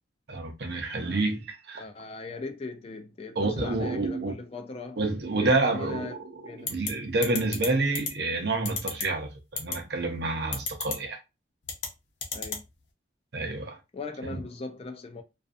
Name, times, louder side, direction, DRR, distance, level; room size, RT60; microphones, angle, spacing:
voice 1, 0.3-1.8 3.4-4.3 5.0-11.2 13.3-13.8 14.2-14.4, right 2 dB, 60° right, 0.6 m, -28 dB
voice 2, 1.8-5.0 5.3-6.1 6.4-6.8 12.3-12.6 13.9-15.2, left 3 dB, 30° left, 0.4 m, -38 dB
sound 1, 6.7-6.9 7.2-7.7 7.9-8.1 8.6-9.0 9.6-9.7 10.5-10.9 11.6-11.9 12.2-12.6, left 5 dB, 75° left, 0.8 m, -30 dB
2.5 x 2.4 x 2.4 m
head